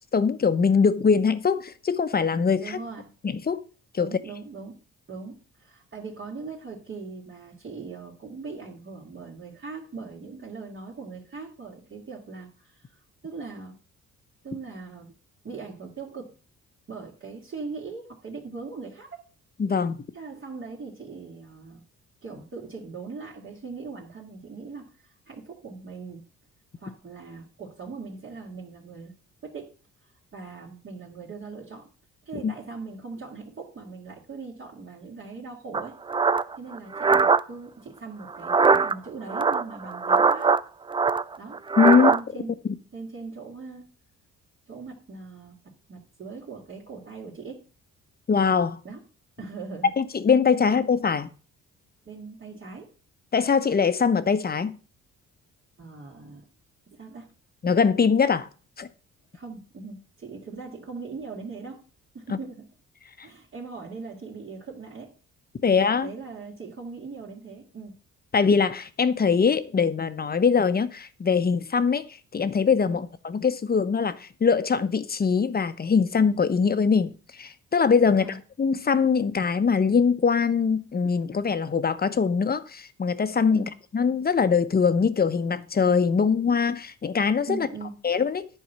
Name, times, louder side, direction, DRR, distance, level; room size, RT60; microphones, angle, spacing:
voice 1, 0.1-2.8 3.2-3.6 3.9-4.1 19.6-20.0 32.4-32.5 41.8-42.1 42.6-42.7 48.3-48.8 50.0-51.3 53.3-54.8 57.6-58.5 58.8-58.9 63.2-63.3 65.6-66.1 68.3-72.1 72.3-87.7 88.0-88.5, left 5 dB, 30° left, 1.0 m, -22 dB
voice 2, 2.6-3.1 4.0-4.8 5.1-12.8 13.2-13.8 14.4-15.1 15.4-16.4 16.9-19.2 20.1-21.8 22.2-26.3 26.8-29.1 29.4-29.7 30.3-31.9 32.2-36.0 36.6-40.5 41.4-41.6 41.9-42.6 42.9-43.9 44.7-47.6 48.8-49.0 49.4-49.9 52.0-52.9 55.8-56.5 56.9-57.3 59.3-61.8 62.1-62.7 63.2-65.1 65.6-67.9 72.9-73.0 78.0-78.4 83.5-83.7 87.5-88.0, right 4 dB, 45° right, 2.6 m, -40 dB
sound 1, 35.7-37.4 38.3-38.9 39.3-40.6 40.9-42.2, right 4 dB, 15° right, 0.4 m, -21 dB
10.5 x 4.7 x 6.9 m
cardioid pair, 90°, 30 cm